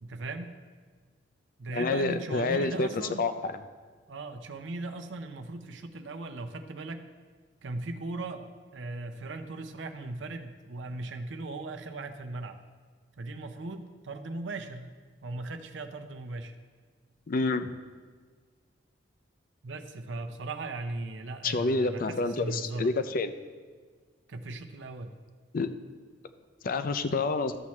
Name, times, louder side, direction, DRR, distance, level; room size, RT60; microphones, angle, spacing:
voice 1, 0.0-0.6 1.6-3.2 4.1-7.1 7.6-12.6 13.2-14.9 15.2-16.6 19.6-23.0 24.3-25.1, right 2 dB, 85° right, 6 dB, 0.7 m, -38 dB
voice 2, 1.7-2.9 3.2-3.5 17.3-17.7 21.4-23.3 25.5-25.7 26.6-27.6, left 3 dB, 50° left, 10 dB, 0.5 m, -28 dB
13.0 x 7.1 x 3.2 m, 1.5 s
head